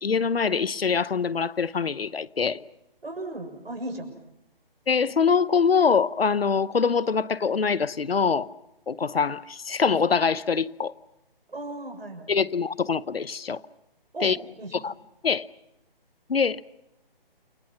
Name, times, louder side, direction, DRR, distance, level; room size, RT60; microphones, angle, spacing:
voice 1, 0.0-2.6 4.9-8.5 8.9-10.9 12.3-13.6 14.2-14.4 14.8-14.9 15.2-15.4 16.3-16.6, left 5 dB, 85° left, 0.9 m, -24 dB
voice 2, 3.0-4.1 11.5-12.3 14.1-14.8, right 1 dB, 85° right, 6.6 m, -36 dB
29.0 x 24.5 x 5.9 m
figure-of-eight pair, 155°, 29 cm